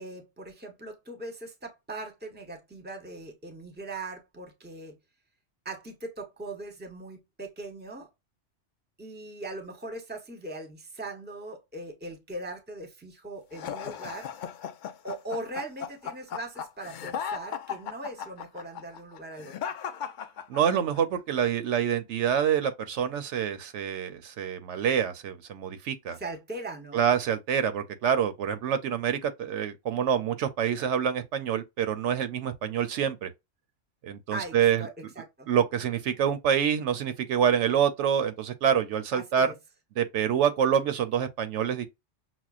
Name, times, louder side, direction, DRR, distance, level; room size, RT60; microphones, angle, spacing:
voice 1, 0.0-4.9 5.6-8.1 9.0-14.3 15.0-19.5 26.1-27.1 34.3-35.5 39.1-39.5, right 2 dB, 10° right, 0.8 m, -40 dB
sound 1, 13.5-21.0, left 8 dB, 60° left, 0.5 m, -36 dB
voice 2, 20.5-26.2 26.9-33.3 34.0-34.9 35.5-39.5 40.0-41.9, right 8 dB, 75° right, 0.9 m, -26 dB
6.0 x 2.1 x 2.4 m
omnidirectional pair, 1.2 m